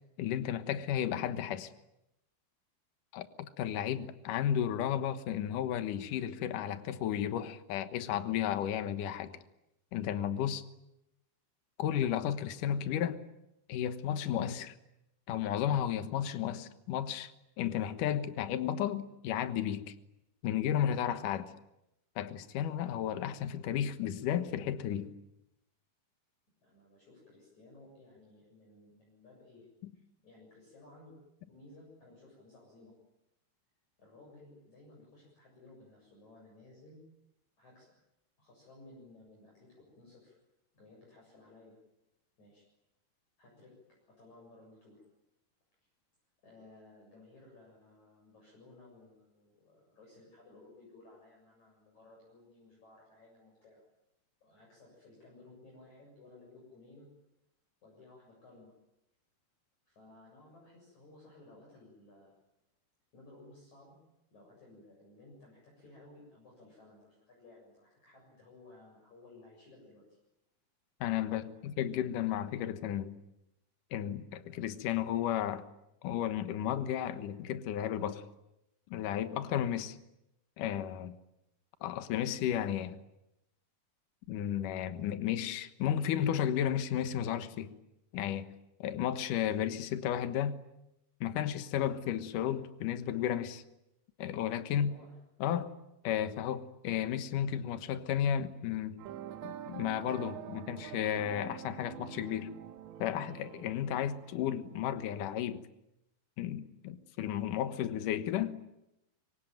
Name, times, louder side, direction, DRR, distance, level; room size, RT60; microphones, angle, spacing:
voice 1, 0.2-1.7 3.1-9.3 9.9-10.6 11.8-13.2 13.7-14.8 15.3-17.3 17.6-19.9 20.4-21.5 22.2-25.1 71.0-73.2 73.9-75.6 76.0-78.2 78.9-80.0 80.6-81.2 81.8-83.0 84.3-87.7 88.1-88.5 88.8-90.6 91.2-93.6 94.2-94.9 95.4-95.7 96.0-99.0 99.4-102.5 103.0-105.6 106.4-108.6, left 10 dB, 65° left, 10 dB, 2.1 m, -33 dB
voice 2, 26.6-29.7 29.9-31.2 31.5-32.9 34.0-37.1 37.6-37.9 38.4-40.4 40.7-41.8 42.4-42.6 43.4-43.8 44.1-45.1 46.4-53.8 54.4-57.1 57.8-58.7 59.9-62.3 63.1-64.0 64.3-70.2 71.5-71.6 94.7-95.1, left 2 dB, 35° left, -2 dB, 8.6 m, -57 dB
sound 1, 99.0-105.3, right 11 dB, 70° right, 3.5 m, -46 dB
25.0 x 25.0 x 9.1 m, 0.87 s
omnidirectional pair, 5.5 m